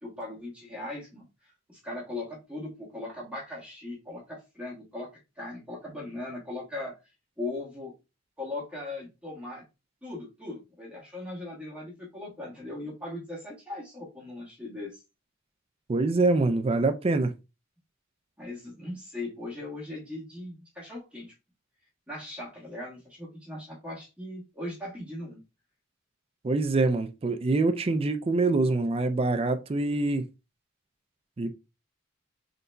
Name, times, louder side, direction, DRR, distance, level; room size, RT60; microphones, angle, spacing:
voice 1, 0.0-1.3 1.7-5.1 5.4-6.9 7.4-7.9 8.4-9.6 10.0-14.9 18.4-21.3 22.1-25.4, left 2 dB, 5° right, 1.5 m, -39 dB
voice 2, 15.9-17.3 26.4-30.2 31.4-31.5, right 3 dB, 30° right, 0.4 m, -25 dB
3.9 x 3.9 x 2.2 m
head